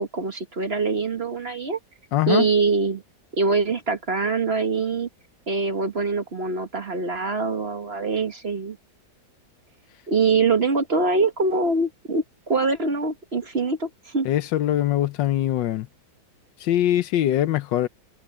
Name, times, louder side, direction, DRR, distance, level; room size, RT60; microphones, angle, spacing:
voice 1, 0.0-1.8 2.3-3.0 3.3-5.1 5.5-8.8 10.1-14.3, right 4 dB, 35° right, 1.5 m, -24 dB
voice 2, 2.1-2.5 14.2-15.9 16.6-17.9, left 12 dB, 80° left, 1.4 m, -22 dB
omnidirectional pair, 2.0 m